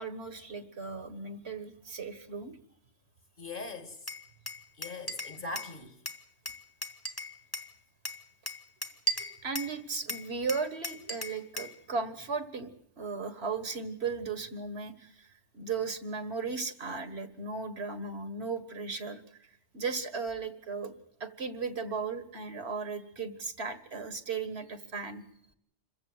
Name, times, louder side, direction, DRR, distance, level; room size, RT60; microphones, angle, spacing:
voice 1, 0.0-2.6 9.2-12.7 13.0-20.9 21.2-25.2, right 4 dB, 65° right, 1.9 m, -36 dB
voice 2, 3.4-4.0 4.8-6.0, left 3 dB, 50° left, 2.3 m, -41 dB
Glass, 4.1-5.7 6.1-7.7 8.1-9.8 10.1-11.8, right 1 dB, 20° left, 1.4 m, -37 dB
26.5 x 15.0 x 7.9 m
omnidirectional pair, 1.2 m